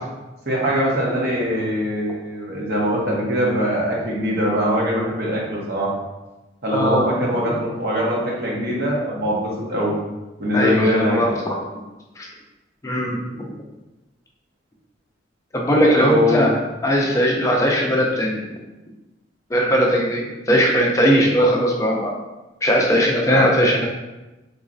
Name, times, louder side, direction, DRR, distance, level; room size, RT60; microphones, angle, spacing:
voice 1, 0.4-5.9 6.6-9.9 10.4-11.2 15.8-16.4 23.3-23.4, equal, 55° right, -4 dB, 1.0 m, -22 dB
voice 2, 6.7-7.1 10.5-11.6 12.2-12.3 12.8-13.5 15.5-16.6 16.8-18.4 19.5-22.1 22.6-23.9, equal, 15° left, -1 dB, 0.4 m, -19 dB
4.0 x 2.9 x 2.6 m, 1.0 s
head